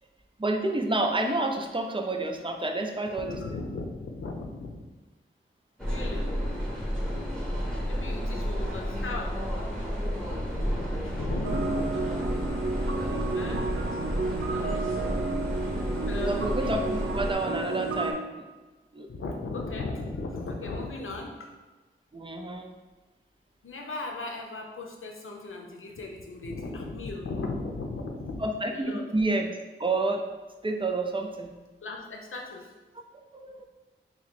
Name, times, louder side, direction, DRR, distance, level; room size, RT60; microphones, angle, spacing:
voice 1, 0.4-3.4 7.1-7.3 16.0-18.4 18.9-19.1 22.1-22.7 28.4-29.5 29.8-30.3 30.6-31.5 33.3-33.6, right 2 dB, 25° right, 3 dB, 0.5 m, -29 dB
voice 2, 3.2-4.8 5.8-6.3 7.9-9.4 10.5-12.2 13.3-13.7 13.9-14.0 16.1-16.4 19.1-21.6 23.6-28.5 28.7-29.0 31.8-32.7, left 3 dB, 75° left, 1 dB, 0.6 m, -37 dB
sound 1, 5.8-17.3, equal, 5° left, 0.9 m, -31 dB
sound 2, 11.4-18.1, right 3 dB, 80° right, 0.5 m, -31 dB
3.0 x 2.7 x 4.1 m, 1.2 s
wide cardioid pair, 60°, 21 cm